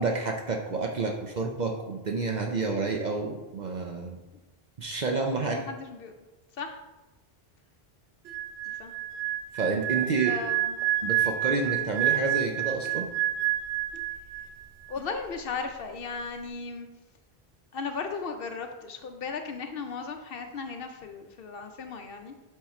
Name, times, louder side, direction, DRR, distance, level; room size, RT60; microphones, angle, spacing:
voice 1, 0.0-4.2 4.8-5.6 9.5-10.4 11.0-13.0, right 4 dB, 50° right, 2 dB, 0.7 m, -29 dB
voice 2, 5.5-6.1 6.5-6.8 8.8-8.9 10.2-10.7 14.9-16.9 17.7-22.3, left 5 dB, 70° left, 6 dB, 0.8 m, -36 dB
sound 1, 8.3-14.6 14.9-15.2, right 13 dB, 85° right, 0.9 m, -29 dB
7.3 x 3.8 x 4.2 m, 1.1 s
omnidirectional pair, 1.0 m